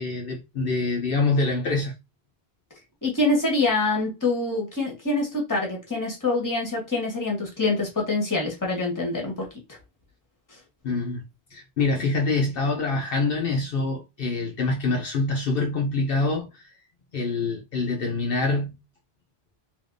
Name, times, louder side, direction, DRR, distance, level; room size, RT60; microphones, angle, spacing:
voice 1, 0.0-1.9 10.8-11.2 11.5-16.6 17.1-18.8, left 3 dB, 60° left, 0.9 m, -25 dB
voice 2, 3.0-9.5, left 2 dB, 20° left, 1.1 m, -25 dB
3.4 x 2.8 x 2.5 m
omnidirectional pair, 1.1 m